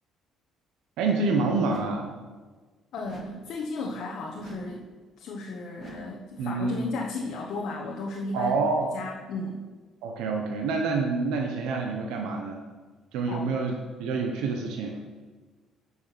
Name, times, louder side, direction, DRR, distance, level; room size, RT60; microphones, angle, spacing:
voice 1, 1.0-2.1 6.4-6.8 8.3-8.9 10.0-12.6 13.1-15.0, right 4 dB, 85° right, 2 dB, 1.1 m, -27 dB
sound 1, 1.6-2.2 3.0-3.6 4.4-4.9 5.8-6.3, right 3 dB, 40° right, 1.5 m, -43 dB
voice 2, 2.9-4.9 5.2-8.6 8.9-9.6 13.3-13.5, left 2 dB, 65° left, 0 dB, 1.2 m, -34 dB
9.7 x 6.2 x 6.1 m, 1.4 s
cardioid pair, 125°, 0 cm